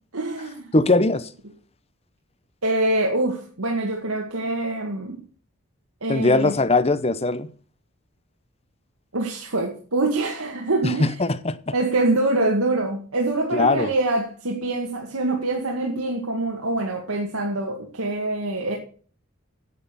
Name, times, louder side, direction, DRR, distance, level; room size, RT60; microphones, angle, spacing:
voice 1, 0.1-0.7 2.6-5.2 6.0-6.5 9.1-11.1 11.7-18.8, right 2 dB, 85° right, 2.0 m, -25 dB
voice 2, 0.7-1.3 6.1-7.5 10.8-11.6 13.5-13.9, left 2 dB, 30° left, 0.7 m, -20 dB
9.7 x 8.1 x 6.8 m
head